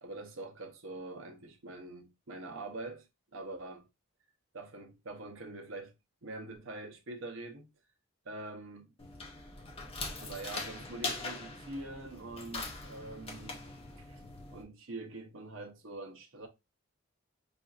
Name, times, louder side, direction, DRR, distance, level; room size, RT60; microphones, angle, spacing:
voice 1, 0.0-3.1 3.3-3.9 4.5-5.9 6.2-7.7 8.3-8.9 10.2-13.6 14.0-14.2 14.5-16.5, right 2 dB, 65° right, 0.8 m, -44 dB
sound 1, 9.0-14.6, left 3 dB, 25° left, 0.7 m, -42 dB
5.0 x 2.5 x 2.4 m
head